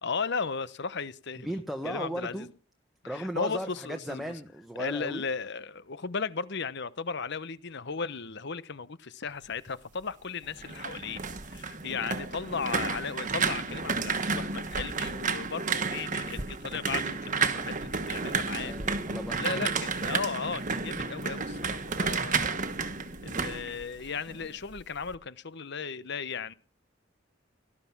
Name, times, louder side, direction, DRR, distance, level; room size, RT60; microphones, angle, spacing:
voice 1, 0.0-1.5 1.8-2.5 3.0-4.3 4.8-11.2 11.5-18.7 19.3-22.6 23.2-26.5, left 5 dB, 60° left, 1.0 m, -36 dB
voice 2, 1.4-2.5 3.0-5.3 18.6-19.7, right 1 dB, ahead, 1.3 m, -36 dB
sound 1, 10.5-24.5 24.8-25.2, right 4 dB, 40° right, 1.4 m, -31 dB
18.5 x 12.5 x 6.0 m
head